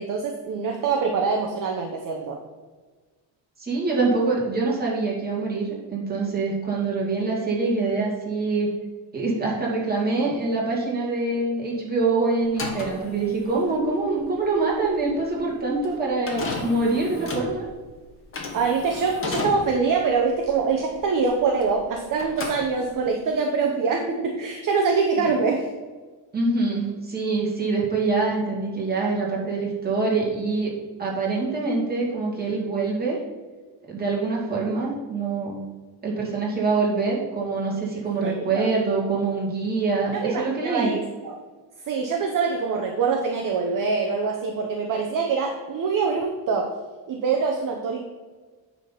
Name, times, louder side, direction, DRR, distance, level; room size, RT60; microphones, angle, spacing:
voice 1, 0.0-2.4 18.5-25.7 38.2-38.7 40.1-41.4 41.9-46.7 47.1-48.0, right 5 dB, 45° right, 2 dB, 0.9 m, -24 dB
voice 2, 3.6-8.7 9.1-17.6 25.2-25.3 26.3-30.7 31.0-33.2 33.9-35.6 36.0-40.9, right 3 dB, 20° right, -4 dB, 2.4 m, -25 dB
sound 1, 12.4-21.9 22.2-23.2, left 3 dB, 25° left, 1.5 m, -34 dB
9.5 x 4.3 x 5.9 m, 1.4 s
cardioid pair, 160°, 47 cm